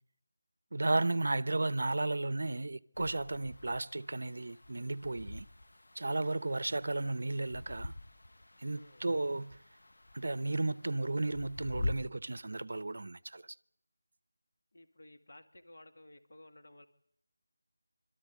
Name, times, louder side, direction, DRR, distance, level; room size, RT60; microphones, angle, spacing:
voice 1, 0.7-5.5 5.9-7.9 8.6-9.6 10.1-13.5, right 2 dB, 55° right, 0.7 m, -34 dB
sound 1, 2.9-11.9, left 2 dB, 65° left, 1.2 m, -45 dB
voice 2, 8.8-9.1 14.7-16.9, left 1 dB, 50° left, 2.1 m, -56 dB
25.0 x 13.5 x 8.4 m
figure-of-eight pair, 175°, 0 cm